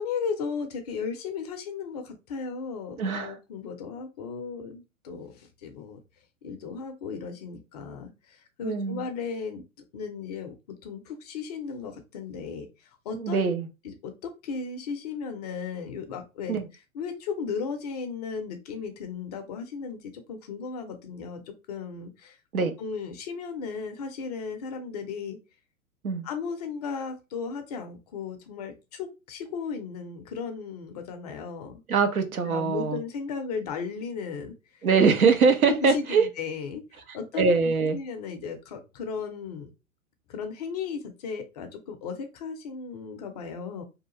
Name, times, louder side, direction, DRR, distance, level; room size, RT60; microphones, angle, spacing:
voice 1, 0.0-6.0 6.4-9.6 9.9-12.7 13.1-13.5 13.8-16.6 16.9-22.4 22.8-25.4 26.2-31.8 32.2-34.5 35.2-35.3 35.7-36.8 37.1-37.4 37.9-39.7 40.3-43.8, left 5 dB, 30° left, 0.4 m, -35 dB
voice 2, 3.0-3.4 8.6-9.1 13.1-13.7 16.5-16.7 22.5-22.7 26.0-26.2 31.9-33.0 34.8-36.3 37.4-38.0, right 5 dB, 80° right, 0.8 m, -23 dB
2.7 x 2.3 x 2.8 m
figure-of-eight pair, 105°, 42 cm